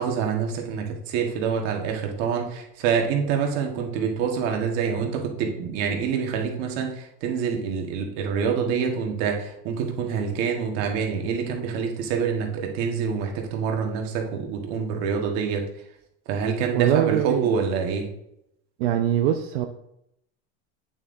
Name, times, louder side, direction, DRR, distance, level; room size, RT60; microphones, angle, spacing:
voice 1, 0.0-15.6 16.3-18.1, right 6 dB, 55° right, 2 dB, 1.5 m, -26 dB
voice 2, 16.7-17.5 18.8-19.7, right 10 dB, 90° right, 6 dB, 0.6 m, -22 dB
8.6 x 7.5 x 2.6 m, 0.79 s
cardioid pair, 160°, 31 cm